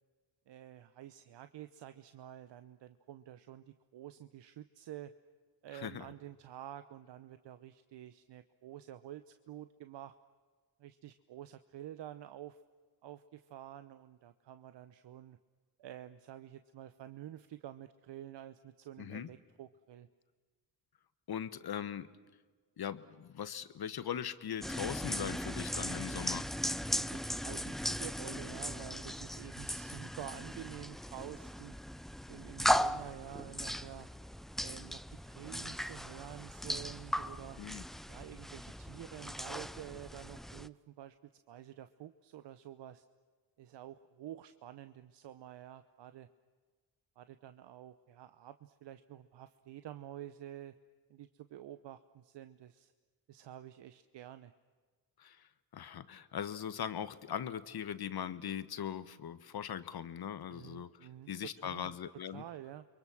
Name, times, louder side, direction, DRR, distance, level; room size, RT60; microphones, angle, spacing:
voice 1, 0.5-3.6 3.9-5.1 5.6-10.1 10.8-12.6 13.0-15.4 15.8-20.1 26.8-31.7 32.3-34.1 34.6-37.6 38.1-41.2 41.5-43.0 43.6-46.3 47.2-50.7 51.1-52.9 53.3-54.5 60.5-61.9 62.3-62.8, right 12 dB, 60° right, 11 dB, 1.0 m, -49 dB
voice 2, 5.7-6.1 19.0-19.3 21.3-22.1 22.8-26.5 37.6-37.8 55.2-55.4 55.7-60.9 61.3-62.4, left 9 dB, 50° left, 13 dB, 1.4 m, -40 dB
sound 1, 24.6-40.7, equal, ahead, 0.7 m, -38 dB
30.0 x 23.0 x 6.3 m, 1.4 s
hypercardioid pair, 50°, 47 cm